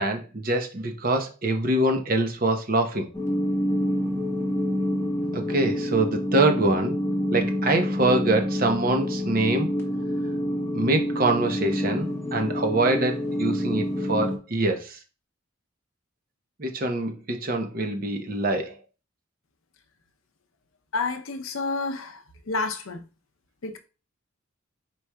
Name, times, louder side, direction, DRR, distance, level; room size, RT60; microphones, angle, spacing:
voice 1, 0.0-3.1 5.3-6.9 7.3-9.7 10.7-15.0 16.6-18.8, right 2 dB, 45° right, 0.8 m, -24 dB
sound 1, 3.1-14.4, equal, 10° left, 0.9 m, -27 dB
voice 2, 20.9-22.2 22.5-23.0 23.6-23.8, left 3 dB, 80° left, 0.6 m, -29 dB
4.7 x 4.2 x 2.3 m
head